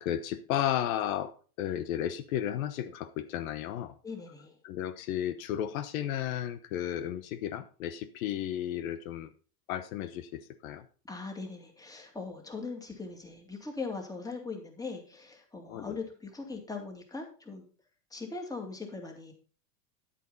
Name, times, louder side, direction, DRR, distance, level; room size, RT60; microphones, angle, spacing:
voice 1, 0.0-1.3 1.6-3.9 4.6-9.3 9.7-10.8 15.7-16.0, left 11 dB, 70° left, 11 dB, 1.1 m, -33 dB
voice 2, 4.0-4.5 11.0-17.7 18.1-19.3, left 4 dB, 10° left, 3 dB, 2.4 m, -40 dB
10.5 x 9.2 x 4.0 m, 0.38 s
supercardioid pair, 140°, 42 cm